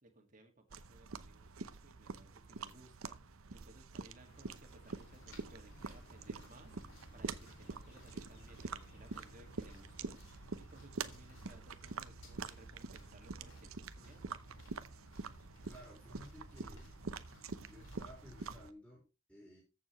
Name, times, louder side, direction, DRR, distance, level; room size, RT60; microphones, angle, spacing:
voice 1, 0.0-14.4, right 2 dB, 35° right, 4 dB, 2.0 m, -61 dB
sound 1, 0.7-18.7, right 4 dB, 80° right, 0.8 m, -46 dB
sound 2, 4.2-10.7, left 1 dB, 50° left, 3.5 m, -65 dB
sound 3, 4.8-18.6, left 2 dB, 65° left, 4.6 m, -60 dB
voice 2, 15.7-16.9 17.6-19.6, equal, 5° left, -5 dB, 5.1 m, -56 dB
14.0 x 7.1 x 3.1 m, 0.29 s
head